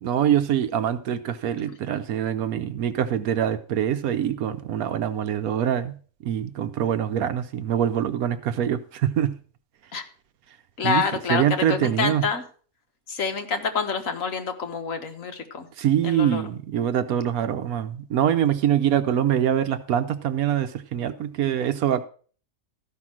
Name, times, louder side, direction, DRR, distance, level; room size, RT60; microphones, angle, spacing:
voice 1, 0.0-5.9 6.2-9.4 10.8-11.0 11.3-12.2 15.8-22.0, right 10 dB, 80° right, 11 dB, 1.2 m, -24 dB
voice 2, 10.8-12.4 13.1-15.7 16.0-16.5, left 5 dB, 65° left, 5 dB, 1.7 m, -27 dB
13.5 x 5.8 x 6.0 m, 0.41 s
omnidirectional pair, 1.5 m